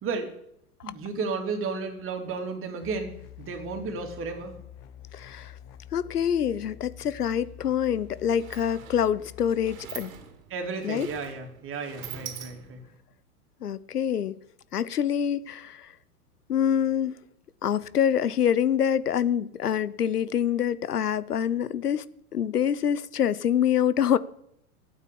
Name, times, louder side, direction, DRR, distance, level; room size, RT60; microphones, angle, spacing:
voice 1, 0.0-0.3 0.8-3.1 3.4-4.6 10.5-12.8, right 4 dB, 30° right, 3.1 m, -33 dB
sound 1, 2.8-9.8, left 10 dB, 35° left, 1.0 m, -47 dB
voice 2, 5.1-5.5 5.9-10.1 10.8-11.1 13.6-14.4 14.7-15.9 16.5-17.2 17.6-22.0 22.3-24.2, left 9 dB, 85° left, 0.8 m, -26 dB
Sliding door, 7.7-7.8 8.0-13.0, right 9 dB, 60° right, 2.6 m, -44 dB
12.5 x 9.0 x 8.6 m
hypercardioid pair, 105°, 45 cm